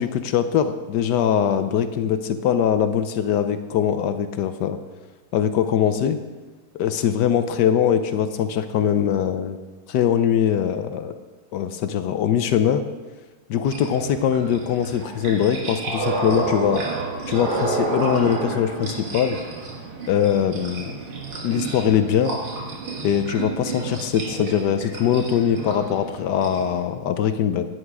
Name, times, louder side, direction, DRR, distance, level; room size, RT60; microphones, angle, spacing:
voice 1, 0.0-4.8 5.3-6.2 6.8-9.6 9.9-11.1 11.5-12.8 13.5-16.8 17.3-19.4 20.1-21.0 21.4-22.4 23.0-27.7, left 9 dB, 70° left, 10 dB, 1.0 m, -22 dB
sound 1, 13.7-26.8, right 3 dB, 75° right, 2.4 m, -30 dB
10.5 x 9.7 x 4.8 m, 1.2 s
omnidirectional pair, 2.3 m